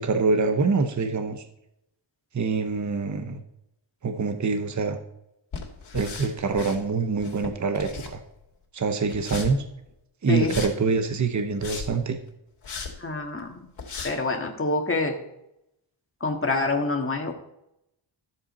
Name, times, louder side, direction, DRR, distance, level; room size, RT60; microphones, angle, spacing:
voice 1, 0.0-1.5 2.3-3.4 4.0-5.0 5.9-8.2 8.7-9.6 10.2-12.2, right 4 dB, 40° right, 7 dB, 0.9 m, -25 dB
sound 1, 5.5-6.8 7.1-8.4 9.1-9.5 10.4-10.7 11.4-12.0 12.6-12.9 13.4-13.5 13.8-14.1, left 5 dB, 85° left, 2.7 m, -36 dB
voice 2, 10.3-10.6 13.0-13.7 14.0-15.2 16.2-17.3, left 3 dB, 25° left, 2 dB, 1.7 m, -26 dB
13.5 x 7.6 x 4.2 m, 0.83 s
wide cardioid pair, 130°, 47 cm